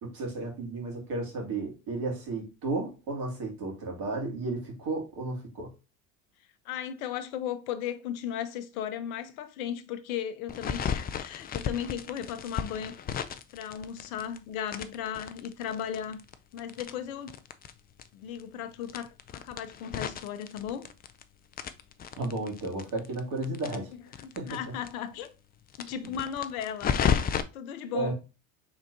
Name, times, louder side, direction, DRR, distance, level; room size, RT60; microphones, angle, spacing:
voice 1, 0.0-5.7 22.2-23.9 24.4-24.7 27.9-28.1, right 2 dB, 55° right, 2.3 m, -33 dB
voice 2, 6.6-12.9 13.5-16.2 16.5-17.4 18.1-20.9 24.2-25.3 25.8-27.2 27.5-28.1, left 9 dB, 75° left, 0.8 m, -36 dB
sound 1, 10.5-14.4 14.7-17.7 18.0-18.1 18.3-18.4 18.8-21.2 21.5-24.6 24.8-24.9 25.2-25.3 25.7-27.4, left 7 dB, 25° left, 0.4 m, -33 dB
5.0 x 3.7 x 2.7 m
hypercardioid pair, 70°, 42 cm